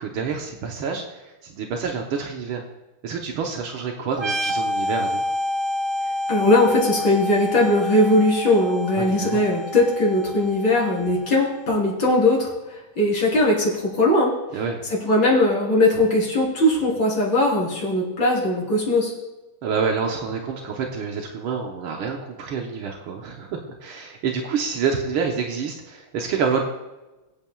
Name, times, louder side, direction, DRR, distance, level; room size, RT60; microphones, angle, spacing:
voice 1, 0.0-2.6 3.0-5.3 8.9-9.4 14.5-14.8 19.6-26.6, right 5 dB, 80° right, 1 dB, 1.9 m, -28 dB
sound 1, 4.1-11.6, left 1 dB, 40° right, 1.4 m, -28 dB
voice 2, 6.3-14.3 15.0-19.1, left 1 dB, 65° left, -5 dB, 4.6 m, -20 dB
21.5 x 8.9 x 2.4 m, 1.1 s
omnidirectional pair, 2.3 m